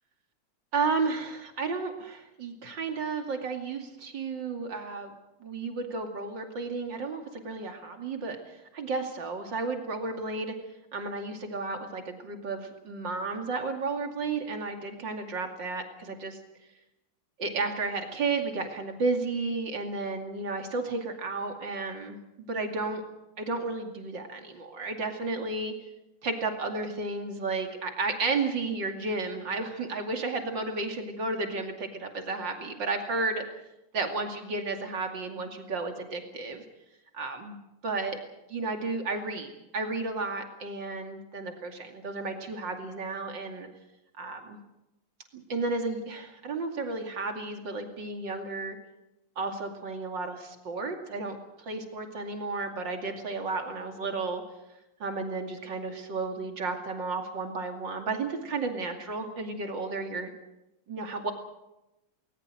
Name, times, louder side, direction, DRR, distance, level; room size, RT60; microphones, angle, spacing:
voice 1, 0.7-5.1 5.4-10.5 10.9-16.4 17.4-22.2 22.5-23.0 23.4-25.7 26.2-33.4 33.9-36.6 37.1-37.6 37.8-38.2 38.5-43.7 44.2-44.6 45.5-48.8 49.4-54.4 55.0-60.3 60.9-61.3, right 3 dB, 55° right, 4 dB, 3.2 m, -33 dB
20.0 x 20.0 x 7.6 m, 0.93 s
omnidirectional pair, 2.3 m